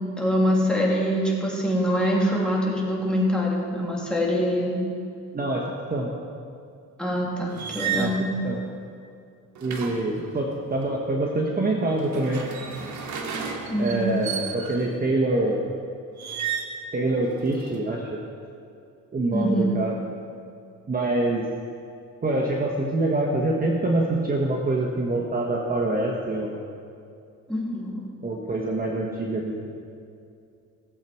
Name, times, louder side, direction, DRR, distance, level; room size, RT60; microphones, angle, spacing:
voice 1, 0.0-4.8 7.0-8.3 13.7-14.1 19.3-19.8 27.5-28.0, equal, 5° left, -4 dB, 3.1 m, -24 dB
sound 1, 7.5-8.2 9.5-10.9 11.9-14.9 16.2-16.8 17.2-17.8, right 7 dB, 70° right, 1.5 m, -33 dB
voice 2, 9.6-12.4 13.8-15.7 16.9-18.2 19.1-20.0 20.9-21.5 22.2-26.6 28.2-29.7, right 2 dB, 30° right, -1 dB, 1.4 m, -25 dB
17.5 x 7.8 x 4.5 m, 2.5 s
cardioid pair, 90°, 30 cm